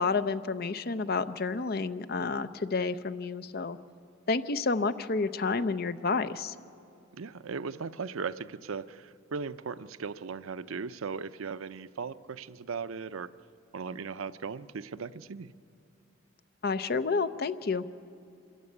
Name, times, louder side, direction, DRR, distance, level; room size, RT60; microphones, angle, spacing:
voice 1, 0.0-3.8 4.3-6.5 16.6-17.9, left 4 dB, 50° left, 12 dB, 0.6 m, -30 dB
voice 2, 7.1-13.3 13.7-15.5, right 5 dB, 85° right, 13 dB, 0.6 m, -38 dB
25.5 x 15.0 x 9.7 m, 2.5 s
head